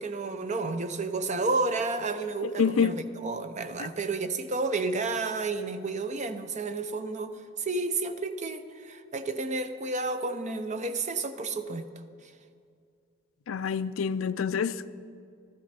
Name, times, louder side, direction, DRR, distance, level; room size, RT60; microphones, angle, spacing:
voice 1, 0.0-11.9, right 3 dB, 35° right, 0.6 m, -31 dB
voice 2, 2.4-3.0 3.8-3.9 13.5-14.9, left 6 dB, 85° left, 0.4 m, -27 dB
13.5 x 12.5 x 4.3 m
head